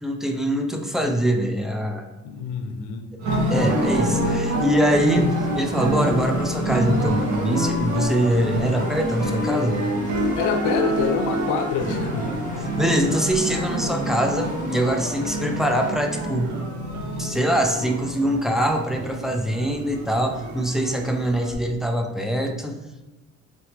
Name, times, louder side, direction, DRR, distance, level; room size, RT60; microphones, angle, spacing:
voice 1, 0.0-2.0 3.5-9.8 12.8-16.5 17.2-22.7, right 1 dB, ahead, 3 dB, 0.4 m, -23 dB
voice 2, 2.2-3.0 10.4-12.3 17.0-17.2, left 6 dB, 85° left, 6 dB, 0.6 m, -26 dB
sound 1, 3.2-21.5, right 1 dB, 70° right, 1.0 m, -27 dB
sound 2, 3.3-15.9, left 2 dB, 25° left, 0.8 m, -39 dB
3.9 x 3.4 x 3.0 m, 1.1 s
cardioid pair, 90°, 30 cm